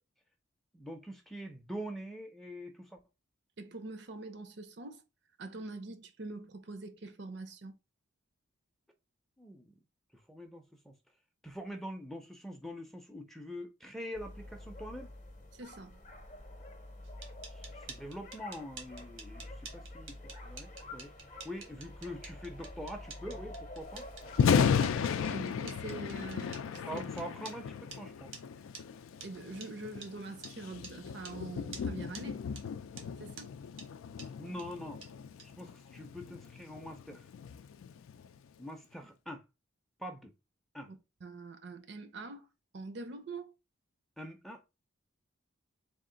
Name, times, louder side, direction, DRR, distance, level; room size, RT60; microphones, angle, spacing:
voice 1, 0.7-3.0 9.4-9.7 10.1-10.9 11.4-15.1 17.5-21.1 21.4-24.1 26.9-28.3 34.4-35.0 35.6-37.3 38.6-39.4 40.0-40.3 40.7-40.9 44.2-44.6, equal, ahead, 0.4 m, -44 dB
voice 2, 3.6-5.0 5.4-7.8 15.5-16.0 25.2-27.0 29.2-32.4 33.2-33.5 40.9-41.0 41.2-42.5 42.7-43.5, right 3 dB, 55° right, 0.5 m, -44 dB
sound 1, 14.1-25.0, left 1 dB, 35° left, 0.7 m, -48 dB
sound 2, 17.0-27.6 27.9-28.0 28.3-28.4 28.7-28.8 29.2-29.3 29.6-29.7 30.0-30.1 30.4-30.5 30.8-30.9 31.2-31.4 31.7-31.9 32.1-32.2 32.6-32.7 33.0-33.1 33.4-33.5 33.8-33.9 34.2-34.3 34.6-34.7 35.0-35.1 35.4-35.5, right 5 dB, 85° right, 1.1 m, -48 dB
Thunder, 24.2-38.4, left 7 dB, 90° left, 0.3 m, -35 dB
3.6 x 2.4 x 3.7 m
head